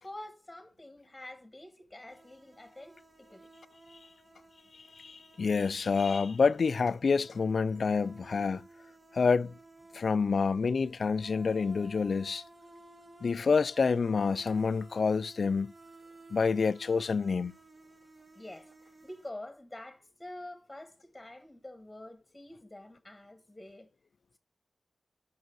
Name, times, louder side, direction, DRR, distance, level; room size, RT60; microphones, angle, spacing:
voice 1, 0.0-3.5 18.3-23.9, left 1 dB, 10° left, 1.3 m, -47 dB
sound 1, 2.1-19.3, right 2 dB, 35° right, 1.5 m, -56 dB
voice 2, 5.0-8.7 9.1-9.5 9.9-12.4 13.2-15.7 16.3-17.6, left 5 dB, 65° left, 0.3 m, -28 dB
6.6 x 5.6 x 6.1 m
wide cardioid pair, 110°, 0 cm